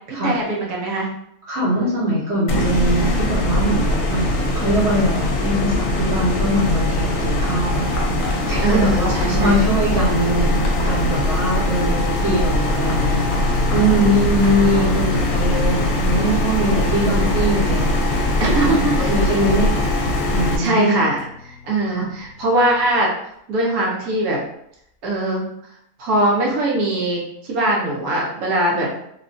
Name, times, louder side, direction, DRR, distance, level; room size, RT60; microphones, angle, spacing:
voice 1, 0.1-1.1 8.6-9.5 14.3-15.0 16.9-17.3 18.4-19.1 20.6-21.2 21.5-23.1 23.5-24.4 25.0-25.5 26.0-28.9, right 1 dB, 75° right, -3 dB, 1.3 m, -21 dB
voice 2, 1.5-7.9 8.5-13.3 13.7-18.0 18.4-19.7 20.3-21.0 22.0-22.1 28.8-28.9, equal, 50° right, -9 dB, 1.1 m, -22 dB
sound 1, 2.5-20.6, left 1 dB, 70° left, 0.9 m, -21 dB
sound 2, 6.7-11.8 12.6-15.6 15.9-21.2 22.0-22.3 23.3-23.4 24.3-24.4 25.1-25.2, left 2 dB, 85° left, 0.4 m, -38 dB
sound 3, 12.9-22.9, left 6 dB, 10° left, 0.5 m, -32 dB
3.3 x 2.4 x 2.5 m, 0.75 s
omnidirectional pair, 1.6 m